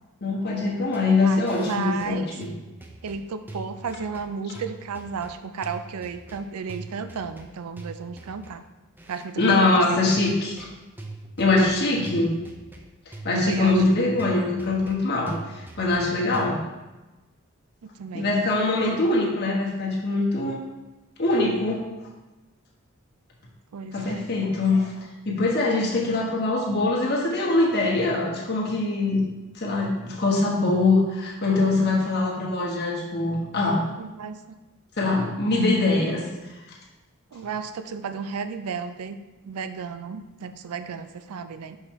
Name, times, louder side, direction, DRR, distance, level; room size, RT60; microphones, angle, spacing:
voice 1, 0.2-2.5 9.4-10.6 11.4-12.3 13.1-16.6 18.1-20.6 21.2-21.8 23.9-24.9 25.2-29.2 29.5-33.8 35.0-36.2, left 2 dB, 45° left, -3 dB, 1.2 m, -23 dB
sound 1, 0.9-16.5, right 2 dB, 10° right, 0.4 m, -42 dB
voice 2, 1.2-2.4 3.0-8.6 9.1-10.4 13.3-13.8 17.8-18.3 23.7-24.3 34.0-34.6 37.3-39.2 39.4-41.8, right 5 dB, 90° right, 10 dB, 0.4 m, -33 dB
5.6 x 5.4 x 3.1 m, 1.1 s
head